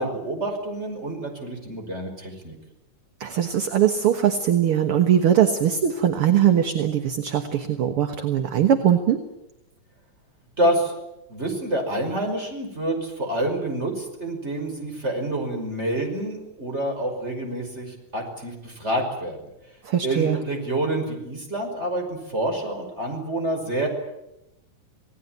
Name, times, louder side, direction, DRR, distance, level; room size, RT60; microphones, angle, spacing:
voice 1, 0.0-2.5 10.6-10.9 11.3-19.4 20.0-23.9, right 1 dB, 20° right, 3 dB, 5.7 m, -27 dB
voice 2, 3.2-9.2 19.8-20.4, right 9 dB, 55° right, 7 dB, 2.1 m, -21 dB
28.0 x 18.5 x 9.3 m, 0.89 s
omnidirectional pair, 3.4 m